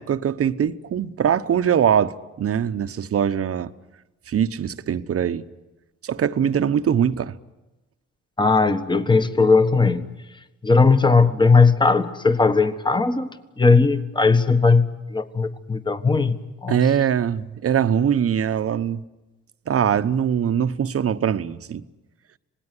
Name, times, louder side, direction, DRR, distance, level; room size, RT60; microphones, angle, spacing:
voice 1, 0.0-3.7 4.3-5.5 6.0-7.3 16.7-19.0 19.7-21.8, right 8 dB, 50° right, 1.0 m, -22 dB
voice 2, 8.4-10.1 10.6-16.8, left 4 dB, 15° left, 1.5 m, -18 dB
26.5 x 19.5 x 9.8 m
cardioid pair, 90°, 30 cm